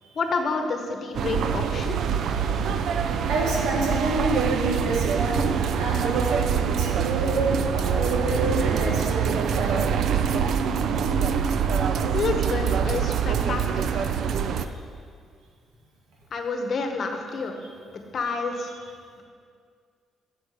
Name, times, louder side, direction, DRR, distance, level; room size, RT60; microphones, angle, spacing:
voice 1, 0.1-2.0 12.1-14.1 16.3-17.6 18.1-18.7, left 4 dB, 55° left, 4 dB, 1.0 m, -29 dB
sound 1, 1.1-14.6, right 7 dB, 70° right, 0.4 m, -24 dB
voice 2, 2.3-9.8 18.7-18.8, right 1 dB, 85° right, -2 dB, 1.7 m, -29 dB
8.4 x 6.0 x 4.8 m, 2.1 s
cardioid pair, 90°, 0 cm